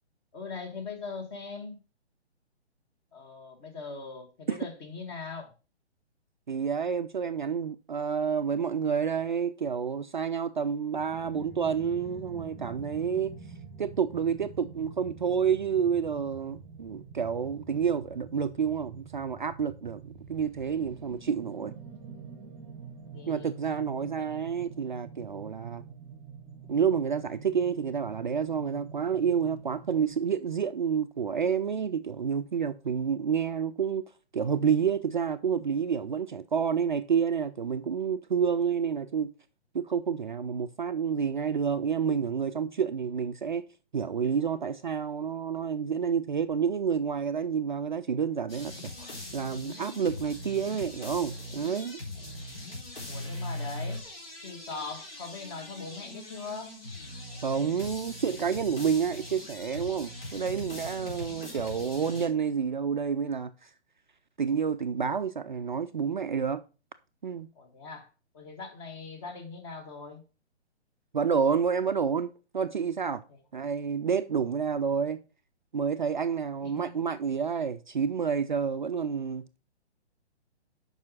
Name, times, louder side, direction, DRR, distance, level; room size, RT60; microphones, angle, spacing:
voice 1, 0.3-1.8 3.1-5.5 21.2-21.3 23.1-23.5 23.9-24.4 52.2-52.4 53.1-54.0 54.4-56.8 67.5-68.1 68.3-70.2 76.6-77.0, left 4 dB, 25° left, 1.5 m, -41 dB
voice 2, 6.5-13.3 13.8-20.0 20.3-21.7 23.3-25.8 26.7-34.1 34.3-39.3 39.7-43.7 43.9-52.0 57.4-63.7 64.4-66.6 67.2-67.5 71.1-73.2 73.5-75.2 75.7-79.4, right 7 dB, 45° right, 0.5 m, -29 dB
sound 1, 11.0-30.2, right 5 dB, 15° right, 1.1 m, -46 dB
sound 2, 48.5-62.3, left 1 dB, 55° left, 3.9 m, -41 dB
7.4 x 5.5 x 5.6 m
figure-of-eight pair, 130°, 34 cm